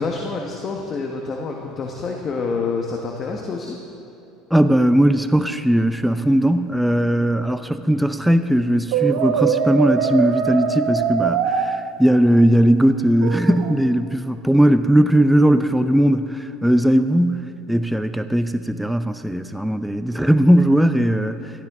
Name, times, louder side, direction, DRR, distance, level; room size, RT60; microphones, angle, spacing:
voice 1, 0.0-3.8, left 4 dB, 35° left, 1 dB, 1.2 m, -27 dB
voice 2, 4.5-21.7, right 1 dB, ahead, 9 dB, 0.5 m, -18 dB
Brass instrument, 8.9-11.7 13.2-13.8, right 7 dB, 80° right, 0.9 m, -22 dB
17.5 x 13.0 x 3.6 m, 2.8 s
supercardioid pair, 105°, 0 cm